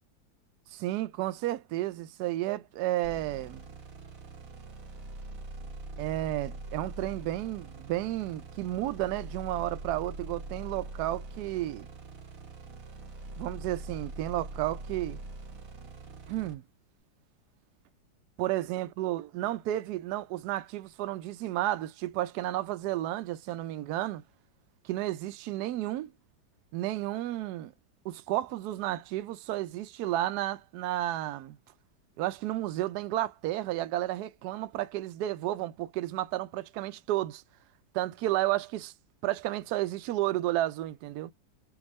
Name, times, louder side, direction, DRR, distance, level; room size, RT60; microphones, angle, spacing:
voice 1, 0.7-3.7 6.0-11.9 13.3-15.2 16.3-16.6 18.4-24.2 24.8-26.1 26.7-27.7 28.0-31.6 32.2-37.4 37.9-38.9 39.2-41.3, right 15 dB, 70° right, 1.0 m, -32 dB
sound 1, 3.0-16.5, right 2 dB, 50° right, 1.5 m, -43 dB
3.5 x 2.6 x 3.1 m
omnidirectional pair, 2.0 m